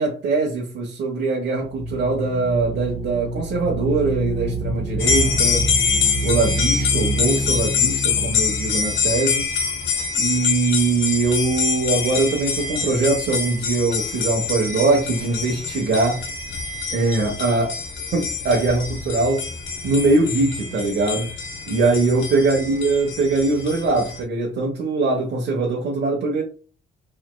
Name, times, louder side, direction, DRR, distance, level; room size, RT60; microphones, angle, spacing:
voice 1, 0.0-5.7 6.2-9.5 10.2-16.2 16.9-17.7 18.1-19.4 19.8-21.3 21.7-26.4, right 3 dB, 60° right, 1.1 m, -22 dB
sound 1, 1.6-10.3, right 1 dB, 35° left, 1.1 m, -27 dB
sound 2, 5.0-24.2, left 5 dB, 70° left, 1.0 m, -25 dB
4.7 x 3.1 x 2.2 m
cardioid pair, 90°, 20 cm